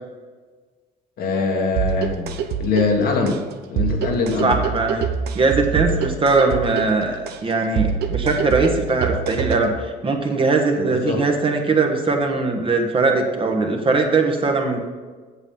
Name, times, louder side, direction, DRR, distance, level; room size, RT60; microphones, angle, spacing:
voice 1, 1.2-2.3 2.6-4.6 10.8-11.2, left 4 dB, 65° left, 2 dB, 1.6 m, -23 dB
sound 1, 1.8-9.8, right 6 dB, 75° right, 0.8 m, -25 dB
voice 2, 4.4-5.1 5.3-9.7 10.0-14.8, right 3 dB, 30° right, 3 dB, 1.4 m, -20 dB
8.2 x 7.2 x 5.5 m, 1.4 s
cardioid pair, 110°, 17 cm